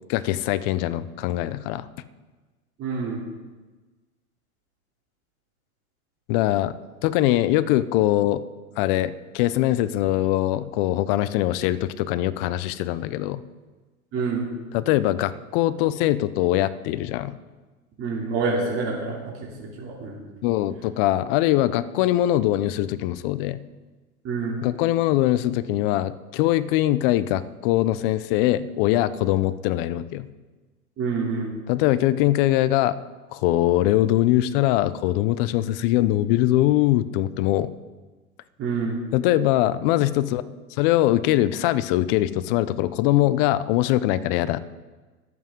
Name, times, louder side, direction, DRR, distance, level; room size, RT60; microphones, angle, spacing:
voice 1, 0.1-1.9 6.3-6.7 7.0-8.4 8.8-13.4 14.7-17.3 20.4-23.6 24.6-30.3 31.7-33.0 33.3-37.7 39.1-40.4 40.8-44.6, left 14 dB, 40° left, 15 dB, 0.7 m, -22 dB
voice 2, 2.8-3.2 14.1-14.4 18.0-19.2 19.6-20.3 24.2-24.6 31.0-31.5 38.6-39.0, right 4 dB, 30° right, -4 dB, 2.9 m, -27 dB
22.5 x 7.9 x 3.7 m, 1.2 s
hypercardioid pair, 120°, 43 cm